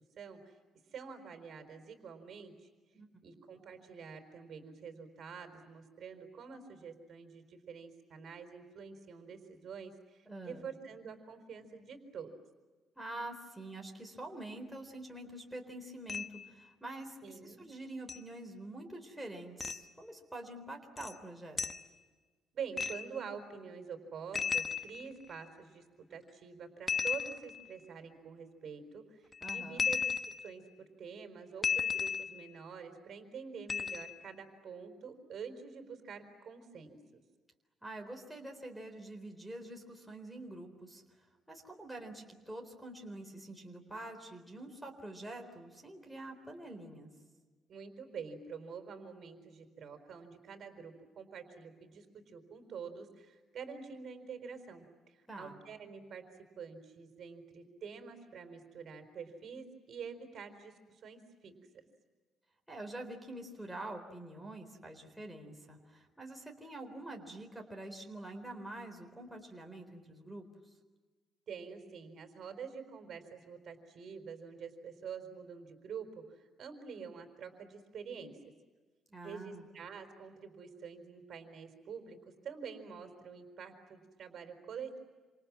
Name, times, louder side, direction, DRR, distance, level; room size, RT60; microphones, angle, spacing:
voice 1, 0.2-0.5 0.9-2.5 3.2-12.3 17.2-17.6 22.5-25.8 26.1-30.1 30.4-37.0 47.7-56.3 56.6-61.5 71.5-78.4 79.2-85.0, right 6 dB, 50° right, 7 dB, 4.5 m, -47 dB
voice 2, 10.3-10.7 13.0-21.6 29.4-29.8 37.8-41.0 41.5-47.1 55.3-55.6 62.7-70.5 79.1-79.7, right 1 dB, ahead, 2 dB, 4.0 m, -46 dB
sound 1, 16.1-16.5 18.1-18.2 19.6-19.8 21.0-21.1 21.6-21.8 22.8-23.2 24.3-25.4 26.9-27.7 29.3-30.6 31.6-32.5 33.7-34.2, left 6 dB, 25° left, 1.2 m, -35 dB
28.5 x 27.5 x 7.6 m, 1.4 s
cardioid pair, 135°, 0 cm